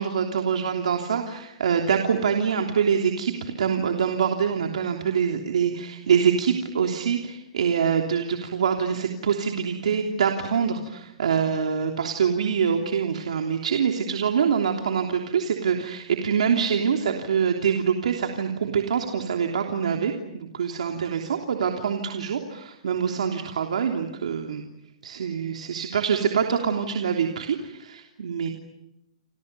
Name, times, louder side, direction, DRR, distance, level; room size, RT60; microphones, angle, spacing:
voice 1, 0.0-24.6 25.0-28.5, right 7 dB, 80° right, 3 dB, 3.3 m, -25 dB
29.5 x 28.0 x 6.9 m, 0.86 s
hypercardioid pair, 160°, 4 cm